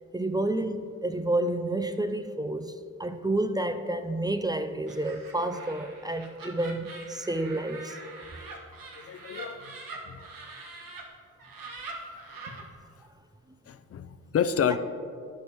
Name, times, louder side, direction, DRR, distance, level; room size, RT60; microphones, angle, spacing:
voice 1, 0.1-2.7 3.0-8.0, right 1 dB, 10° right, 8 dB, 0.4 m, -29 dB
Laughter, 4.9-11.0 11.4-12.6, right 3 dB, 65° right, 1.5 m, -44 dB
voice 2, 9.0-9.8 10.1-10.2 13.7-14.8, left 8 dB, 40° left, 11 dB, 0.5 m, -29 dB
11.5 x 5.4 x 3.0 m, 2.4 s
supercardioid pair, 55°, 36 cm